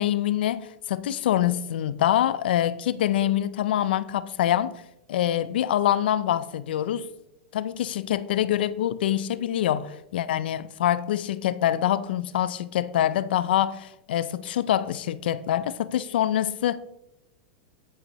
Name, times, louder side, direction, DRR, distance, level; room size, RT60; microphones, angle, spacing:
voice 1, 0.0-4.8 5.1-7.1 7.5-16.8, left 11 dB, 80° left, 0.5 m, -25 dB
9.8 x 8.2 x 3.1 m
hypercardioid pair, 130°, 5 cm